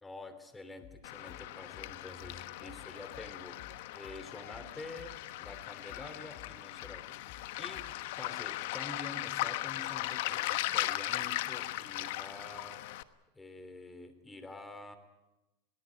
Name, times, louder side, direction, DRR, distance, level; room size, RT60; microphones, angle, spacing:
voice 1, 0.0-3.7 3.9-12.8 13.3-15.0, left 2 dB, 10° left, 10 dB, 3.0 m, -48 dB
sound 1, 0.8-8.0, left 9 dB, 55° left, 1.7 m, -55 dB
Waves surf, 1.0-13.0, left 16 dB, 70° left, 1.1 m, -38 dB
21.0 x 18.0 x 9.8 m, 1.0 s
supercardioid pair, 120°, 0 cm